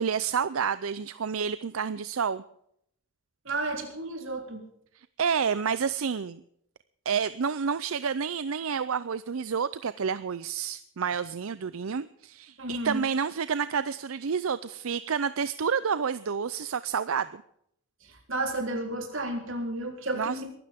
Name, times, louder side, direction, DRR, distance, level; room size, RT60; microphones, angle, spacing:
voice 1, 0.0-2.4 4.9-6.4 7.1-17.4 20.1-20.4, right 6 dB, 85° right, 15 dB, 0.6 m, -29 dB
voice 2, 3.5-4.6 12.6-13.0 18.3-20.5, right 2 dB, 65° right, 4 dB, 3.6 m, -32 dB
23.0 x 13.0 x 3.6 m, 0.71 s
head